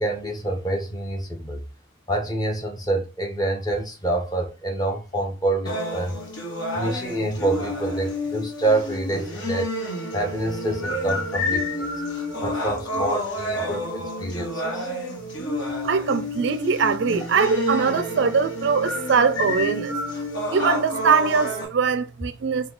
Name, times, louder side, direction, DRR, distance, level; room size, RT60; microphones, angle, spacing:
voice 1, 0.0-1.6 2.1-6.2 6.7-9.7 10.1-11.9 12.4-14.9, right 2 dB, 20° left, 0.7 m, -27 dB
sound 1, 5.7-21.6, left 1 dB, 65° left, 1.3 m, -29 dB
voice 2, 15.8-20.0 20.5-22.7, right 5 dB, 55° right, 0.3 m, -22 dB
4.3 x 2.3 x 3.9 m
head